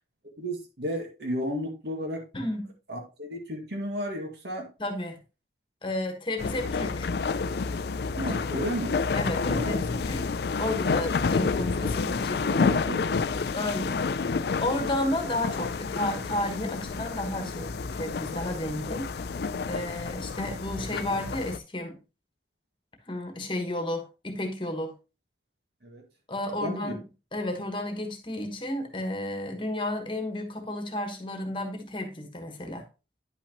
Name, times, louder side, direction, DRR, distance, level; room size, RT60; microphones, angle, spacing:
voice 1, 0.4-2.3 2.9-4.7 8.2-9.0 9.5-10.1 11.8-13.4 25.8-26.0 26.6-27.0, equal, 70° right, 3 dB, 1.9 m, -34 dB
voice 2, 2.3-2.7 4.8-5.2 5.8-7.1 8.4-8.7 9.1-12.7 13.5-14.3 14.6-19.3 19.7-22.0 23.1-24.9 26.3-27.0 27.3-32.9, left 1 dB, 30° left, 5 dB, 1.3 m, -32 dB
sound 1, 6.4-21.6, left 4 dB, 65° left, 0.4 m, -29 dB
9.8 x 5.8 x 2.9 m, 0.29 s
head